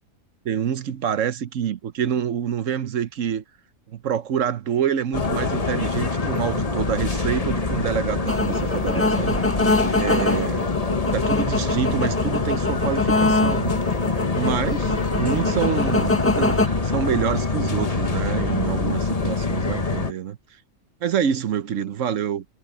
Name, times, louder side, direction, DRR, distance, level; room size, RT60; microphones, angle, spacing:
voice 1, 0.4-3.4 3.9-9.4 10.0-10.7 11.1-13.8 14.3-20.4 21.0-22.4, right 8 dB, 65° right, 1.2 m, -27 dB
sound 1, 5.1-20.1, left 3 dB, 30° left, 1.3 m, -25 dB
sound 2, 8.3-16.7, left 2 dB, 10° left, 1.1 m, -24 dB
omnidirectional pair, 1.4 m